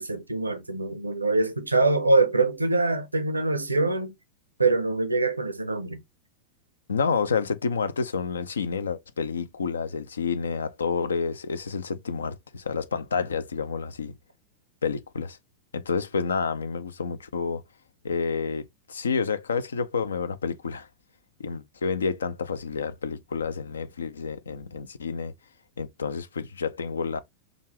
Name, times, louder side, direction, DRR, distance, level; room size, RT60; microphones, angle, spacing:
voice 1, 0.0-4.1 4.6-6.0, right 3 dB, 80° right, 0.6 m, -24 dB
voice 2, 6.9-14.1 14.8-15.4 15.7-17.6 18.0-20.9 21.4-25.3 25.8-27.2, left 5 dB, 70° left, 0.5 m, -29 dB
5.2 x 2.4 x 3.1 m
figure-of-eight pair, 90°, 0 cm